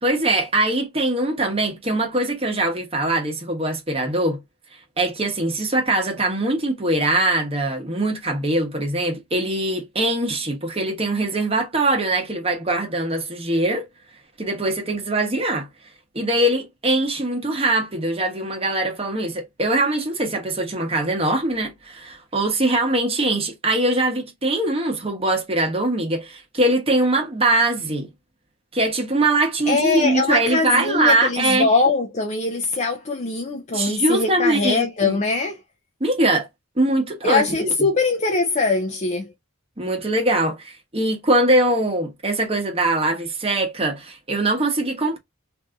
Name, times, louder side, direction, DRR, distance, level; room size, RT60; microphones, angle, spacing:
voice 1, 0.0-4.4 5.0-13.9 14.4-15.7 16.1-28.1 28.7-31.7 33.7-35.2 36.0-36.5 36.8-37.7 39.8-45.2, right 2 dB, 25° right, 0.9 m, -22 dB
voice 2, 29.7-35.6 37.2-39.3, left 3 dB, 35° left, 0.4 m, -22 dB
2.6 x 2.5 x 3.4 m
head